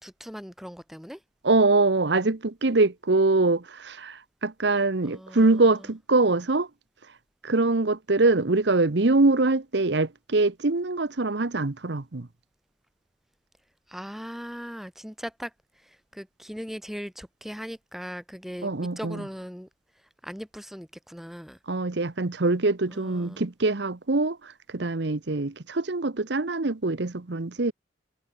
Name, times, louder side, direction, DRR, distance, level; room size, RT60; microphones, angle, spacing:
voice 1, 0.0-1.2 5.0-5.8 13.9-15.5 16.1-19.7 20.2-21.6 22.9-23.4, equal, ahead, 3.9 m, -39 dB
voice 2, 1.4-6.7 7.4-12.3 18.6-19.2 21.7-27.7, right 3 dB, 65° right, 1.0 m, -24 dB
head